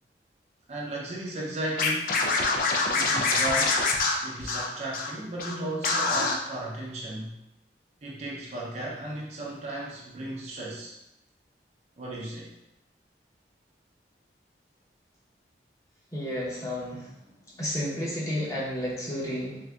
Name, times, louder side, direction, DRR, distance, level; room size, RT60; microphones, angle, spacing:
voice 1, 0.7-2.2 2.9-3.9 4.2-7.4 8.0-11.0 12.0-12.5, right 1 dB, 40° right, -4 dB, 0.5 m, -35 dB
Scratching (performance technique), 1.8-5.1 5.4-5.5 5.8-6.3, left 3 dB, 50° left, 0.3 m, -25 dB
voice 2, 16.1-17.1 17.6-19.6, equal, 20° left, -7 dB, 0.8 m, -31 dB
3.5 x 2.6 x 2.2 m, 0.87 s
head